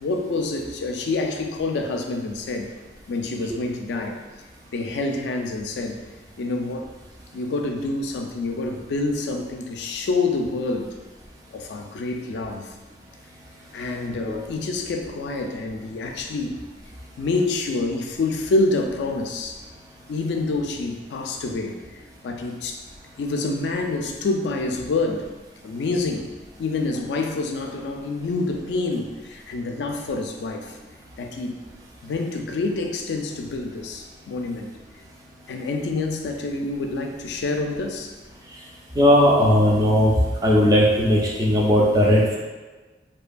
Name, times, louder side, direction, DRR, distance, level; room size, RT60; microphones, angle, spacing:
voice 1, 0.0-2.7 3.1-4.2 4.7-6.0 6.4-6.9 7.3-10.9 11.5-12.7 13.7-16.6 17.2-19.6 20.1-21.8 22.2-22.8 23.2-25.3 25.6-26.3 26.6-30.8 31.2-31.5 32.0-34.7 35.5-38.1, left 3 dB, 75° left, 3 dB, 0.3 m, -27 dB
voice 2, 39.0-40.1 40.4-42.4, equal, 20° right, -3 dB, 0.3 m, -17 dB
2.7 x 2.2 x 2.4 m, 1.3 s
head